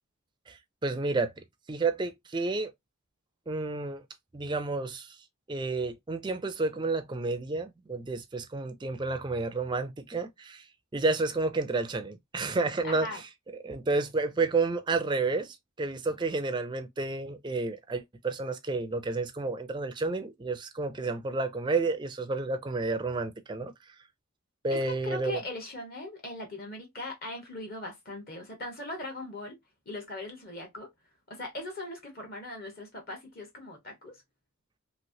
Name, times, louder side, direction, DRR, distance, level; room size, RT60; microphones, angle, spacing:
voice 1, 0.5-2.7 3.5-4.0 4.3-5.2 5.5-10.7 10.9-13.2 13.6-23.7 24.6-25.4, right 3 dB, 20° right, 0.4 m, -30 dB
voice 2, 12.8-13.2 24.7-29.6 29.9-30.9 31.3-34.2, left 2 dB, 45° left, 1.0 m, -39 dB
3.1 x 2.8 x 2.6 m
head